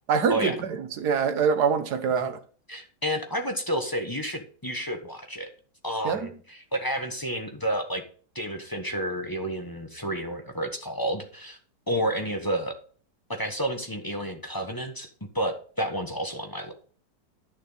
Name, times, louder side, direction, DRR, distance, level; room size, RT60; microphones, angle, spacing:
voice 1, 0.1-2.4 6.0-6.3, right 6 dB, 65° right, 1.7 m, -25 dB
voice 2, 2.7-5.5 5.8-6.3 6.7-8.0 8.3-11.6 11.9-12.7 13.3-15.1 15.3-16.7, equal, 15° left, 1.2 m, -30 dB
11.5 x 6.6 x 4.1 m
omnidirectional pair, 1.9 m